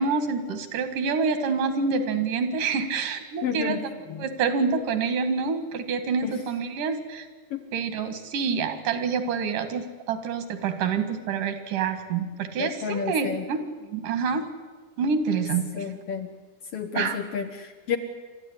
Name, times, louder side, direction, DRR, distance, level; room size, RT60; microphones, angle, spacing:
voice 1, 0.0-3.8 4.2-7.3 7.7-14.5 15.0-15.9 16.9-17.2, right 5 dB, 80° right, 9 dB, 3.3 m, -27 dB
voice 2, 3.4-3.8 4.1-4.2 6.2-6.4 7.5-7.6 12.6-13.5 15.7-16.3 16.7-18.0, left 7 dB, 60° left, 6 dB, 1.7 m, -30 dB
27.5 x 12.5 x 9.9 m, 1.4 s
omnidirectional pair, 3.6 m